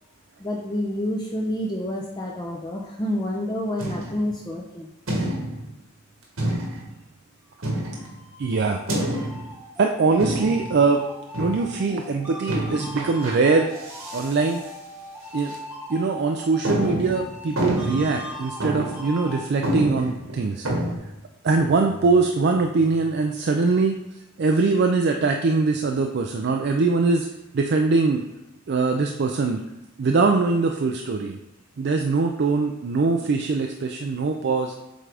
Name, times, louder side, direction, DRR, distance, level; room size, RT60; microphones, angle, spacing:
voice 1, 0.4-4.9, left 1 dB, 20° left, -2 dB, 0.5 m, -28 dB
sound 1, 3.8-4.3 5.1-5.7 6.4-6.9 7.6-8.2 8.9-9.5 10.2-10.8 11.3-11.7 12.5-13.3 13.8-14.3 14.6-14.7 15.4-15.5 16.0-16.1 16.6-18.2 18.6-19.0 19.3-19.4 19.6-21.0, right 1 dB, 85° right, 1.6 m, -28 dB
sound 2, 7.7-19.5, left 1 dB, 5° right, 1.1 m, -40 dB
voice 2, 8.4-8.8 9.8-11.0 11.4-13.7 14.1-14.6 15.3-15.5 15.9-20.7 21.4-24.0 24.4-27.3 27.5-28.2 28.7-29.6 30.0-31.4 31.8-34.7, right 4 dB, 55° right, 3 dB, 0.4 m, -22 dB
7.6 x 3.7 x 3.4 m, 0.95 s
head